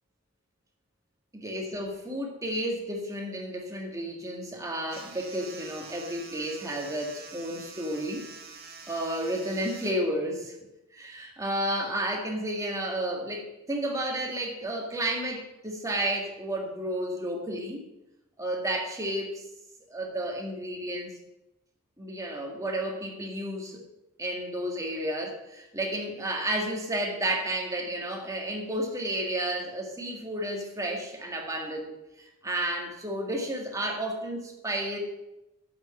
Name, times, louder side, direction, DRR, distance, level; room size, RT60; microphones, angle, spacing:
voice 1, 1.3-8.3 8.9-10.5 10.9-17.9 18.4-19.4 19.9-21.1 22.0-23.8 24.2-35.0, right 1 dB, 15° right, 0 dB, 1.8 m, -32 dB
sound 1, 4.9-9.9, right 4 dB, 50° right, 2.0 m, -46 dB
8.8 x 6.5 x 6.6 m, 0.93 s
head